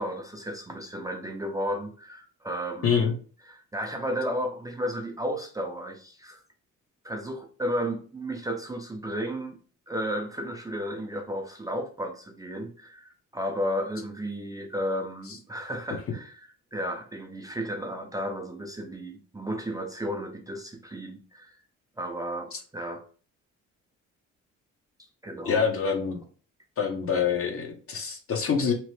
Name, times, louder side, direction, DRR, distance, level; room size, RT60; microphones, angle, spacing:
voice 1, 0.0-3.2 3.5-6.4 7.0-9.6 9.9-21.6 22.0-23.0 25.2-25.7, equal, 10° right, 0.5 m, -33 dB
voice 2, 25.4-26.2 26.8-28.7, left 6 dB, 45° left, 0.8 m, -25 dB
2.9 x 2.1 x 3.1 m
cardioid pair, 90°, 30 cm